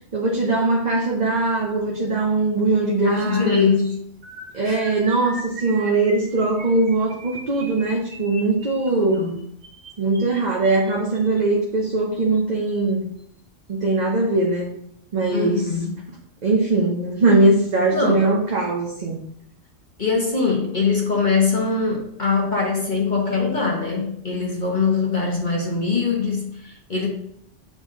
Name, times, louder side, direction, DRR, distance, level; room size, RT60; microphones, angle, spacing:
voice 1, 0.1-3.7 4.5-9.2 10.0-13.0 13.7-14.8 15.1-15.7 16.4-19.2, right 2 dB, 40° right, -2 dB, 0.8 m, -21 dB
voice 2, 3.0-3.9 4.6-4.8 9.0-9.4 15.3-15.9 17.9-18.2 20.0-27.1, left 4 dB, 40° left, -2 dB, 1.1 m, -22 dB
sound 1, 4.2-11.4 12.2-12.4 12.7-12.9 13.2-13.4, right 2 dB, 65° right, 1.4 m, -40 dB
7.0 x 3.9 x 3.6 m, 0.73 s
omnidirectional pair, 1.3 m